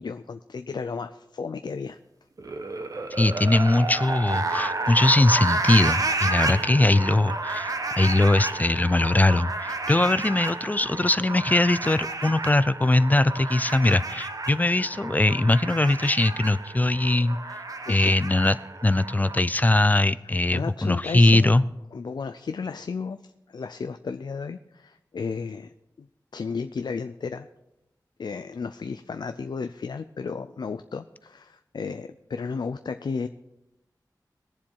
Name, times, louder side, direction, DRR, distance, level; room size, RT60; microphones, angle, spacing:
voice 1, 0.0-2.0 17.9-18.1 20.2-21.5 21.9-25.7 26.0-26.1 26.3-27.5 28.2-33.3, left 5 dB, 80° left, 9 dB, 0.5 m, -33 dB
sound 1, 2.4-19.4, right 3 dB, 55° right, 1.0 m, -31 dB
voice 2, 3.2-17.4 17.9-18.6 18.8-21.6, left 2 dB, 20° left, 15 dB, 0.4 m, -21 dB
21.5 x 7.3 x 4.7 m, 0.94 s
wide cardioid pair, 90°, 7 cm